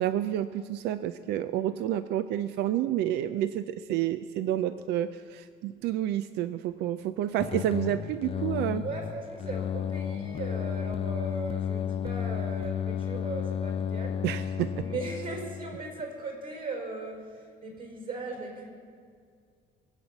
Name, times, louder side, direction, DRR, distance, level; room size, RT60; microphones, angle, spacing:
voice 1, 0.0-8.8 14.2-14.7, right 12 dB, 80° right, 12 dB, 0.5 m, -29 dB
sound 1, 7.4-16.0, left 9 dB, 35° left, 0.4 m, -33 dB
voice 2, 8.8-14.3 14.7-18.7, right 3 dB, 60° right, 2 dB, 5.1 m, -38 dB
22.5 x 8.0 x 7.2 m, 2.2 s
cardioid pair, 110°, 17 cm